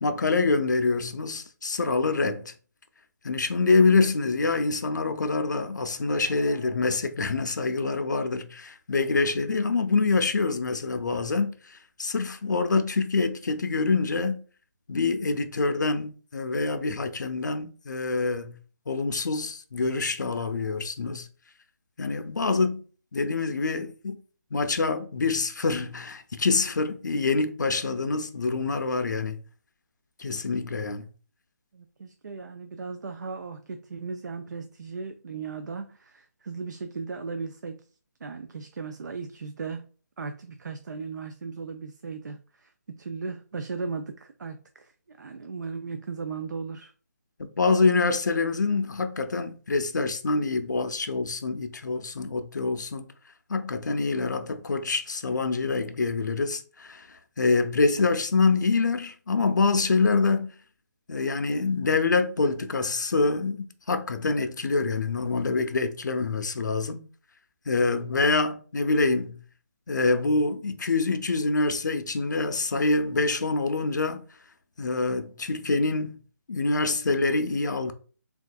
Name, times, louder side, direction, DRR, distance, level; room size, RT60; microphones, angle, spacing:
voice 1, 0.0-2.5 3.2-14.4 14.9-18.6 18.9-21.3 22.0-22.8 23.1-24.2 24.5-29.4 30.2-31.1 47.4-53.1 53.5-60.5 61.1-67.0 67.7-69.4 69.9-74.2 74.8-76.2 76.5-77.9, left 3 dB, 85° left, 0.5 m, -26 dB
voice 2, 31.7-37.9 38.2-39.9 40.2-46.9, right 4 dB, 80° right, 0.4 m, -37 dB
3.6 x 2.4 x 2.3 m
hypercardioid pair, 175°, 10 cm